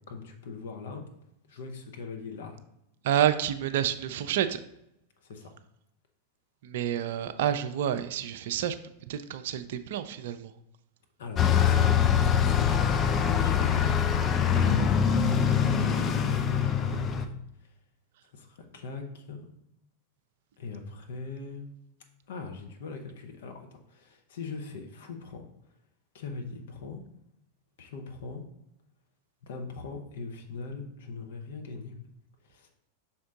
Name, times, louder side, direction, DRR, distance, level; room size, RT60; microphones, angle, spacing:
voice 1, 0.1-1.0 1.5-2.6 5.2-5.5 11.2-13.1 13.4-14.0 14.6-15.0 15.2-17.3 18.3-19.4 20.6-21.7 22.3-25.4 26.1-27.0 27.8-28.4 29.4-31.9 32.5-32.7, left 4 dB, 60° left, 3 dB, 1.0 m, -40 dB
voice 2, 3.0-4.6 6.6-8.8 9.1-10.5, right 10 dB, 55° right, 11 dB, 0.4 m, -29 dB
Bus, 11.4-17.3, left 8 dB, 25° left, 0.5 m, -24 dB
5.9 x 4.3 x 3.8 m, 0.81 s
figure-of-eight pair, 90°, 0 cm